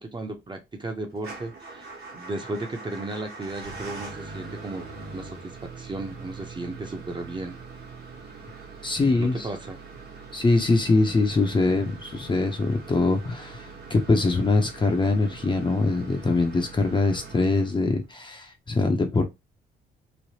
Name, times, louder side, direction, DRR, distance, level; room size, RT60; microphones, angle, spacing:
voice 1, 0.0-7.5 9.2-9.8, right 2 dB, 25° right, 0.7 m, -35 dB
Motor vehicle (road) / Engine starting / Idling, 1.2-18.1, right 4 dB, 55° right, 1.1 m, -42 dB
voice 2, 8.8-9.5 10.3-19.3, left 3 dB, 25° left, 0.6 m, -23 dB
3.2 x 2.1 x 2.8 m
cardioid pair, 90°, 20 cm